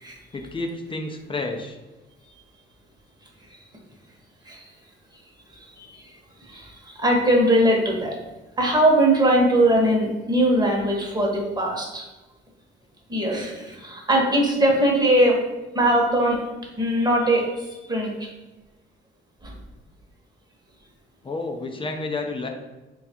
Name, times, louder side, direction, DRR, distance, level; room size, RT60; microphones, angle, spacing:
voice 1, 0.3-1.8 21.2-22.5, left 3 dB, 25° left, 3 dB, 0.5 m, -30 dB
voice 2, 6.4-8.2 8.6-12.0 13.1-15.4 15.7-16.4 16.8-18.3 19.4-19.5, right 1 dB, 20° right, -1 dB, 1.0 m, -21 dB
3.4 x 2.4 x 4.2 m, 1.1 s
cardioid pair, 90°, 20 cm